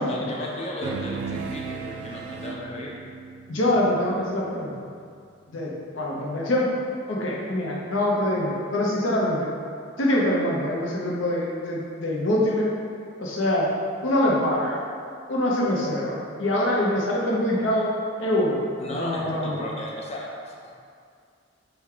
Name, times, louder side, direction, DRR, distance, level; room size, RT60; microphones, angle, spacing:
voice 1, 0.0-2.9 18.8-20.8, left 1 dB, 35° left, -2 dB, 0.5 m, -35 dB
sound 1, 0.8-5.6, right 5 dB, 85° right, 0.4 m, -36 dB
voice 2, 3.5-4.7 5.5-6.7 7.1-9.5 10.0-12.7 13.2-13.7 14.0-14.8 15.3-17.9 18.2-18.6 18.9-19.7, left 1 dB, 85° left, -3 dB, 0.7 m, -24 dB
4.3 x 2.3 x 3.7 m, 2.3 s
head